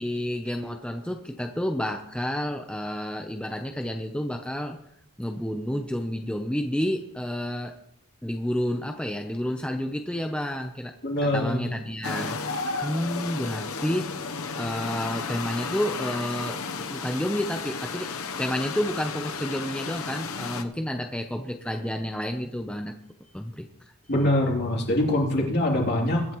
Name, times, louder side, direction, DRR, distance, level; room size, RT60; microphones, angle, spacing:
voice 1, 0.0-4.8 5.2-7.7 8.2-10.9 11.2-12.4 12.8-14.2 14.6-18.1 18.4-22.9 23.3-23.7, equal, 5° left, 4 dB, 0.7 m, -30 dB
voice 2, 11.0-11.7 24.1-26.2, left 1 dB, 50° left, -1 dB, 3.2 m, -24 dB
sound 1, 12.0-20.6, left 4 dB, 65° left, 0.9 m, -33 dB
22.5 x 10.5 x 3.1 m, 0.79 s
head